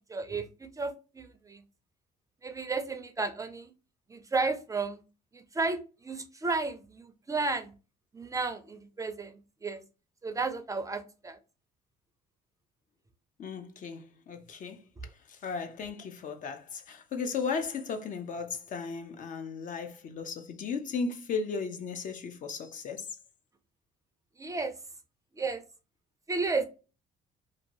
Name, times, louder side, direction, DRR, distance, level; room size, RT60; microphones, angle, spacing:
voice 1, 0.1-1.6 2.4-3.7 4.1-5.0 5.3-7.7 8.1-9.8 10.2-11.4 24.4-24.8 25.4-25.6 26.3-26.6, right 3 dB, 20° right, 0.4 m, -33 dB
voice 2, 13.4-14.8 15.3-23.1, left 5 dB, 50° left, 0.6 m, -36 dB
2.7 x 2.6 x 2.9 m
cardioid pair, 110°, 17 cm